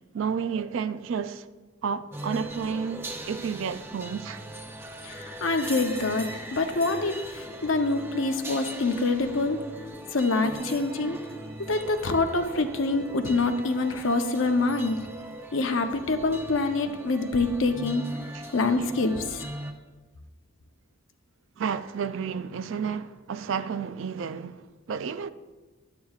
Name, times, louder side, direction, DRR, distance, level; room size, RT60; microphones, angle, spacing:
voice 1, 0.1-1.5 1.8-4.4 18.8-18.9 21.6-25.3, right 6 dB, 60° right, 0.3 m, -31 dB
sound 1, 2.1-19.7, right 1 dB, 10° right, 0.6 m, -40 dB
voice 2, 5.0-9.6 10.1-11.2 11.6-15.0 15.5-18.0 18.5-19.5, left 3 dB, 65° left, 0.7 m, -26 dB
11.5 x 8.4 x 2.4 m
head